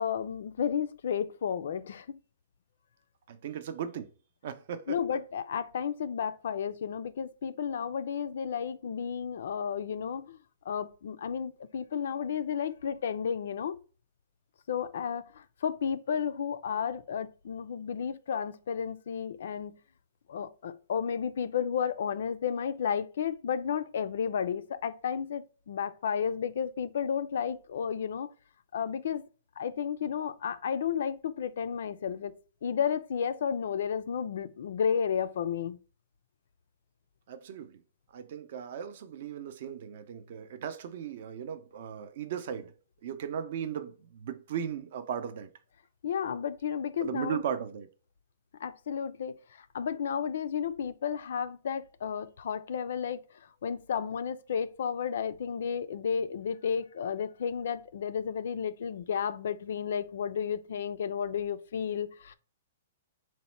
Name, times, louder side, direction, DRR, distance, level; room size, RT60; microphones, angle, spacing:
voice 1, 0.0-2.2 4.9-10.4 10.7-13.8 14.7-19.7 20.3-28.3 28.7-29.2 29.6-32.4 32.6-35.8 46.0-47.4 48.6-53.2 53.6-62.3, left 7 dB, 60° left, 0.3 m, -32 dB
voice 2, 3.3-4.1 4.4-5.0 37.3-37.8 38.1-42.7 43.0-45.5 47.0-47.9, right 8 dB, 45° right, 0.5 m, -37 dB
4.1 x 2.1 x 4.3 m
hypercardioid pair, 175°, 0 cm